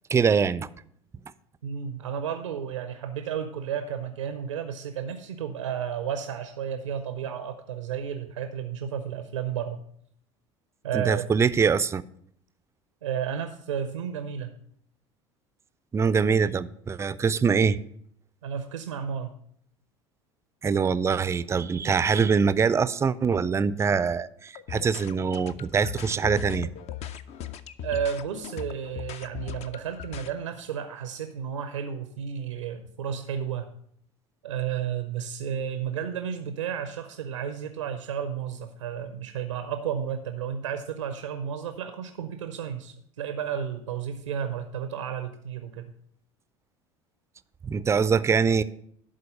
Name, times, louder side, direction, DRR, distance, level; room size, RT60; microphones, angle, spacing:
voice 1, 0.1-0.7 10.9-12.0 15.9-17.8 20.6-26.7 47.6-48.6, right 6 dB, 20° right, 17 dB, 0.4 m, -23 dB
voice 2, 1.6-9.8 10.8-11.2 13.0-14.5 18.4-19.3 27.8-33.7 34.4-45.8, right 8 dB, 80° right, 9 dB, 0.6 m, -32 dB
sound 1, 24.5-30.3, left 9 dB, 45° left, 0.5 m, -38 dB
11.5 x 4.0 x 6.5 m, 0.66 s
figure-of-eight pair, 70°, 16 cm